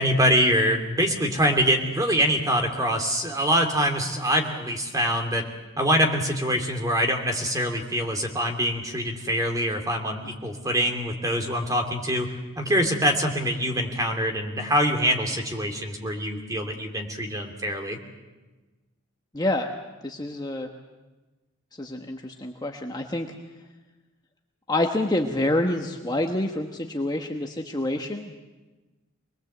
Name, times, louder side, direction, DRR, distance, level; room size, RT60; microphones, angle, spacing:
voice 1, 0.0-5.5 5.8-12.3 12.6-18.0, equal, 15° right, 4 dB, 2.9 m, -24 dB
voice 2, 19.3-19.7 20.0-20.7 21.8-23.4 24.7-28.4, left 1 dB, 20° left, 2 dB, 1.2 m, -27 dB
25.0 x 21.0 x 8.0 m, 1.2 s
head